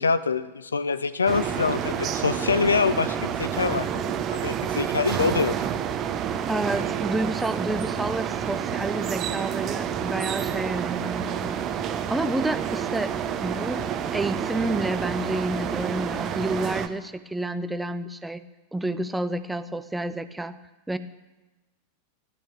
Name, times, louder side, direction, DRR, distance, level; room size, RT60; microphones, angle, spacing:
voice 1, 0.0-5.7, left 5 dB, 75° left, 15 dB, 0.6 m, -25 dB
sound 1, 1.3-16.9, right 8 dB, 30° right, 1.0 m, -29 dB
voice 2, 6.5-11.6 12.1-13.1 13.4-13.9 14.1-18.4 18.7-20.6 20.9-21.0, right 2 dB, 5° right, 12 dB, 0.7 m, -29 dB
15.0 x 11.0 x 7.2 m, 1.1 s
figure-of-eight pair, 90°, 0 cm